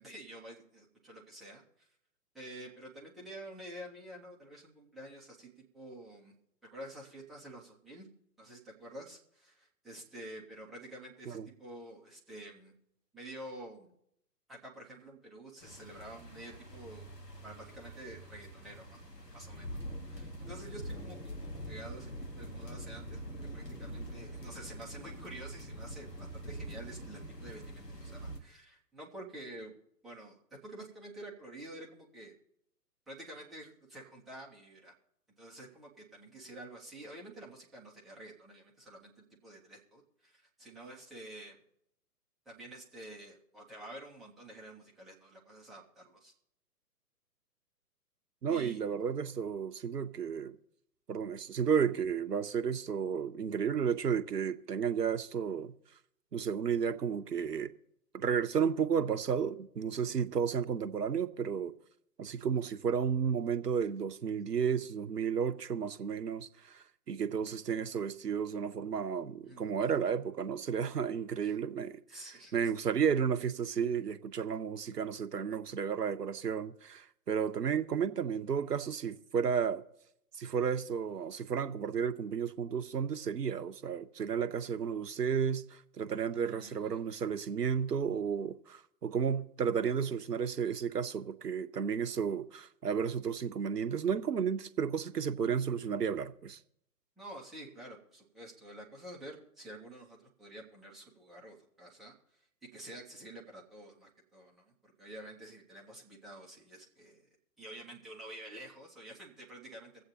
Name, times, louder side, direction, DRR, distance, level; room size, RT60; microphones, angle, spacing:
voice 1, 0.0-1.9 2.3-6.3 6.6-8.1 8.4-12.7 13.1-13.9 14.5-17.1 17.4-21.4 21.7-29.8 30.0-32.3 33.1-34.9 35.4-41.6 42.5-46.3 48.5-48.8 69.4-69.7 71.4-71.6 72.1-72.7 86.3-87.0 97.2-107.3 107.6-110.0, right 1 dB, ahead, 0.6 m, -49 dB
sound 1, 15.6-28.4, right 1 dB, 90° left, 1.6 m, -44 dB
voice 2, 48.4-50.6 51.1-55.7 56.3-57.7 58.1-61.7 62.2-72.0 72.5-79.8 80.4-96.6, right 7 dB, 80° right, 0.8 m, -32 dB
24.0 x 7.9 x 2.9 m
figure-of-eight pair, 125°, 47 cm